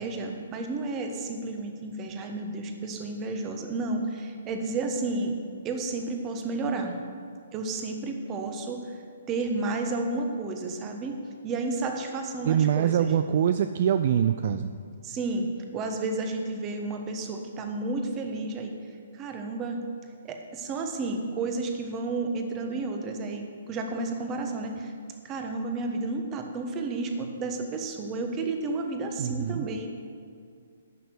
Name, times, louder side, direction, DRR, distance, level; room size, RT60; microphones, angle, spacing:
voice 1, 0.0-5.4 5.6-7.0 7.5-9.0 9.3-11.2 11.4-13.1 15.0-18.7 19.1-19.8 20.2-24.9 25.2-29.9, right 3 dB, 20° right, 4 dB, 1.2 m, -31 dB
voice 2, 12.4-14.7 29.2-29.7, right 9 dB, 45° right, 10 dB, 0.3 m, -24 dB
11.0 x 6.1 x 7.9 m, 2.3 s
figure-of-eight pair, 125°, 0 cm